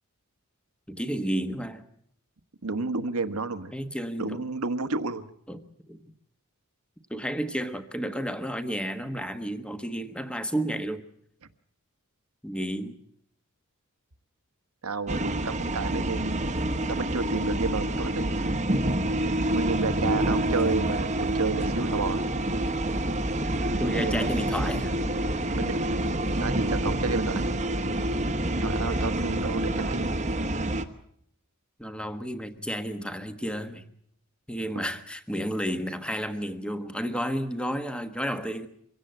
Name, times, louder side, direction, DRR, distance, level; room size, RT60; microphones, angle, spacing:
voice 1, 0.9-1.8 3.7-4.4 5.5-6.0 7.1-11.0 12.4-13.0 20.1-20.4 23.8-25.0 29.7-30.0 31.8-33.8 34.5-38.7, equal, 5° left, 1.3 m, -32 dB
voice 2, 2.6-3.8 4.2-5.3 14.8-16.5 16.9-18.3 19.4-22.3 23.9-24.3 25.5-26.0 26.4-27.5 28.5-30.1, right 3 dB, 80° right, 1.3 m, -31 dB
sound 1, 15.1-30.8, right 1 dB, 30° right, 1.2 m, -27 dB
24.5 x 17.0 x 7.9 m
head